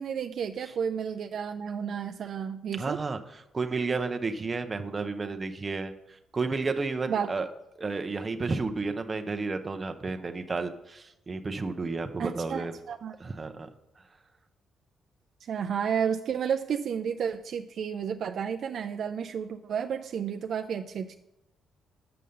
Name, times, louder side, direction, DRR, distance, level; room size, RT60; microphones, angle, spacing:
voice 1, 0.0-3.0 7.1-7.3 12.2-13.2 15.4-21.2, right 7 dB, 60° right, 6 dB, 0.4 m, -31 dB
voice 2, 2.8-5.9 6.3-7.5 7.8-12.7 13.2-13.7, right 3 dB, 30° right, 7 dB, 0.7 m, -32 dB
6.8 x 5.5 x 6.4 m, 0.89 s
cardioid pair, 90°, 0 cm